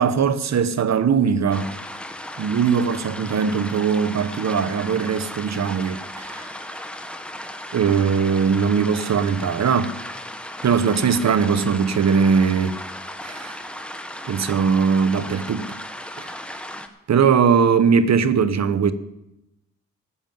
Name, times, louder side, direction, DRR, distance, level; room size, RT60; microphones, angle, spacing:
voice 1, 0.0-1.7 2.4-6.5 7.7-10.0 10.6-12.8 13.2-13.5 14.3-15.7 17.1-18.9, right 6 dB, 60° right, 1.1 m, -20 dB
sound 1, 1.5-16.9, left 1 dB, 5° left, 1.6 m, -36 dB
14.0 x 7.2 x 9.1 m
supercardioid pair, 50°, 31 cm